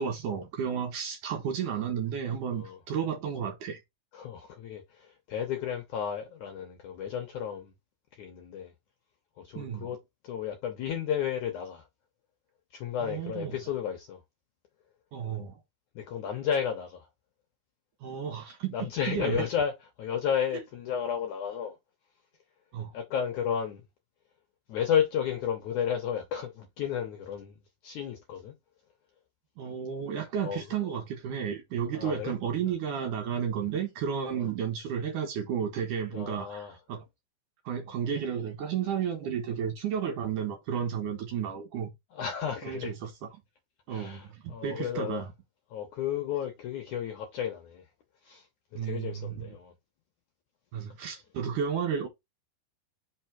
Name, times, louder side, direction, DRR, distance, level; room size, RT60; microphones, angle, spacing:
voice 1, 0.0-3.8 9.6-9.9 13.0-13.6 15.1-15.6 18.0-18.7 19.1-19.4 22.7-22.9 29.6-37.0 37.7-41.9 42.6-43.1 43.9-45.3 48.7-49.5 50.7-52.1, right 8 dB, 60° right, 2.5 m, -32 dB
voice 2, 4.1-7.7 8.1-8.7 9.4-10.0 10.2-11.9 12.7-14.2 16.0-17.1 18.7-21.8 22.9-23.8 24.7-27.6 27.8-28.6 30.4-30.6 31.9-32.3 34.3-34.5 36.1-36.8 42.1-42.9 43.9-45.2 45.7-47.9 48.2-48.5 48.8-49.7, left 8 dB, 70° left, 1.9 m, -33 dB
5.7 x 4.1 x 4.6 m
omnidirectional pair, 4.7 m